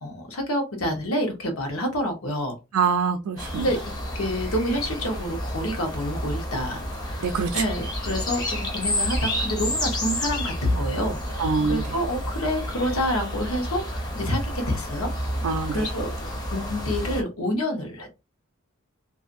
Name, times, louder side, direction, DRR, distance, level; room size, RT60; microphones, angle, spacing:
voice 1, 0.0-2.6 3.6-7.3 7.5-15.1 15.7-18.1, equal, 80° left, 1.0 m, -28 dB
voice 2, 2.7-3.7 7.2-7.6 11.4-11.8 15.4-15.9, right 5 dB, 85° right, 0.4 m, -24 dB
sound 1, 3.4-17.2, equal, 20° left, 0.5 m, -30 dB
2.6 x 2.5 x 2.5 m
head